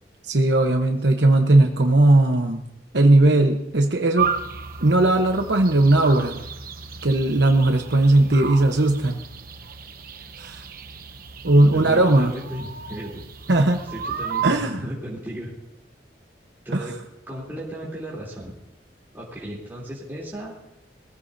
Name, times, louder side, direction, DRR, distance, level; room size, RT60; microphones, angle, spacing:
voice 1, 0.3-2.6 2.9-4.3 4.8-6.4 7.0-9.2 10.4-10.6 11.4-12.3 13.5-13.8 14.4-14.8, right 2 dB, 80° right, 4 dB, 1.1 m, -18 dB
sound 1, 4.2-14.5, right 7 dB, 55° right, 1.0 m, -33 dB
voice 2, 11.5-13.2 13.9-15.5 16.6-16.9 17.3-18.5 19.1-20.5, right 1 dB, 15° right, -6 dB, 3.3 m, -35 dB
21.5 x 15.5 x 2.7 m, 0.80 s
head